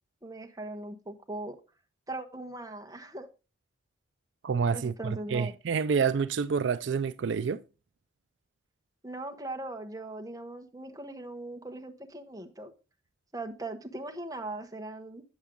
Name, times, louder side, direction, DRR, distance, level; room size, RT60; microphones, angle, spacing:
voice 1, 0.2-1.6 2.1-3.3 4.7-5.6 9.0-12.7 13.3-15.2, right 2 dB, 20° right, 0.9 m, -39 dB
voice 2, 4.4-7.6, right 6 dB, 70° right, 0.4 m, -28 dB
8.0 x 7.2 x 3.7 m
head